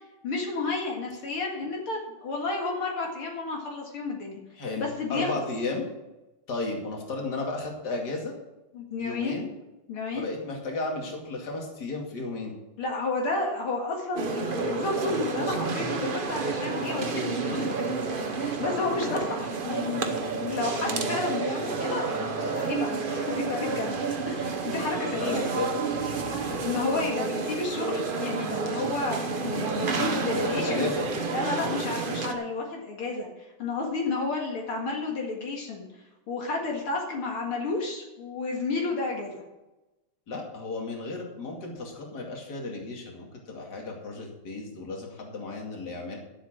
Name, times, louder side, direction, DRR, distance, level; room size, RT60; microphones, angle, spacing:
voice 1, 0.2-4.4 4.8-5.4 8.7-9.4 9.9-10.3 12.8-24.0 24.3-25.4 26.4-30.9 31.3-35.9 36.3-39.4, left 3 dB, 75° left, -1 dB, 2.7 m, -31 dB
voice 2, 4.6-5.9 6.5-8.3 9.0-9.5 10.2-12.5 25.1-25.7 26.4-26.6 30.3-31.0 40.3-46.2, left 3 dB, 45° left, 0 dB, 2.9 m, -33 dB
sound 1, 14.2-32.3, right 4 dB, 45° right, 0.7 m, -30 dB
13.0 x 7.8 x 6.1 m, 1.0 s
omnidirectional pair, 2.4 m